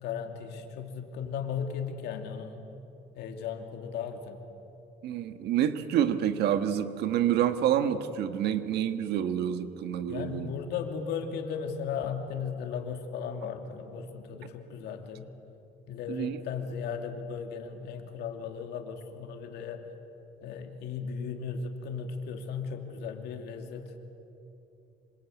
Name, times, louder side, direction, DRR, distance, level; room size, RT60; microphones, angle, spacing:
voice 1, 0.0-2.6 3.1-4.4 10.1-15.3 15.9-19.8 20.4-23.8, left 6 dB, 80° left, 4 dB, 2.9 m, -36 dB
voice 2, 5.0-10.5 16.1-16.4, right 10 dB, 75° right, 9 dB, 1.6 m, -28 dB
27.0 x 26.0 x 8.3 m, 2.9 s
cardioid pair, 110°, 17 cm